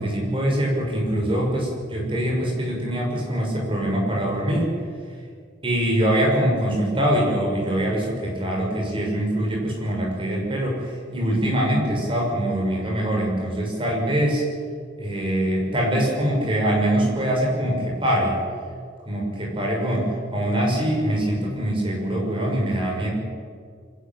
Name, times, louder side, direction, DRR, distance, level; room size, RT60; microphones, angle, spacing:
voice 1, 0.0-4.7 5.6-14.4 15.0-18.4 19.1-23.1, right 1 dB, 30° right, -1 dB, 5.9 m, -23 dB
25.0 x 11.5 x 9.0 m, 2.1 s
head